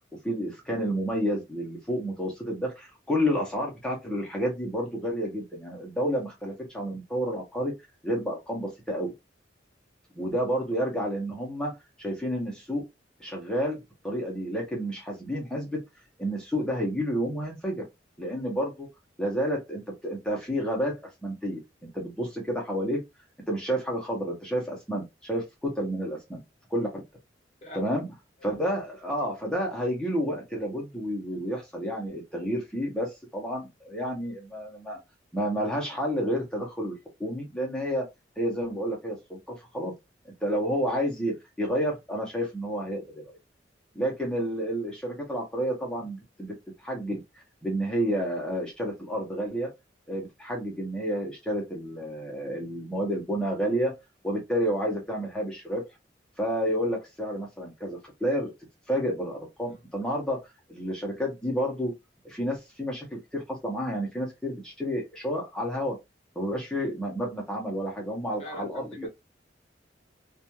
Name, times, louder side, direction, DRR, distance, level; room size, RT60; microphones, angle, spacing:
voice 1, 0.2-7.7 8.0-9.1 10.2-12.8 13.2-15.8 16.2-17.8 18.2-18.9 19.2-21.6 21.9-23.0 23.5-26.4 26.7-27.0 27.7-28.1 28.4-35.0 35.3-36.9 37.2-38.0 38.4-39.9 40.2-43.4 43.9-49.7 50.1-53.9 54.2-55.8 56.4-58.5 58.9-61.9 62.2-66.0 66.4-69.1, equal, 5° left, 0.7 m, -30 dB
voice 2, 27.6-27.9 28.4-28.5 59.7-59.8 68.4-69.1, left 1 dB, 35° left, 0.8 m, -42 dB
2.4 x 2.3 x 2.9 m
head